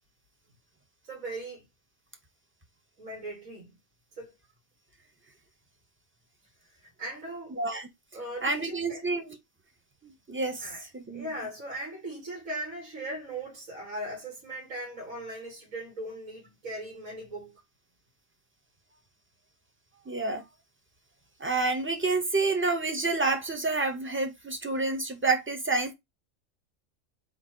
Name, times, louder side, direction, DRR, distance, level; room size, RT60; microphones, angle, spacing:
voice 1, 1.0-1.7 3.0-3.8 4.2-4.4 7.0-7.6 8.1-9.0 10.6-17.6, right 1 dB, 75° right, 2.2 m, -39 dB
voice 2, 7.6-7.9 8.4-9.4 10.3-10.6 10.9-11.3 20.1-20.4 21.4-25.9, right 3 dB, 10° right, 0.6 m, -28 dB
3.9 x 3.1 x 4.4 m
omnidirectional pair, 1.4 m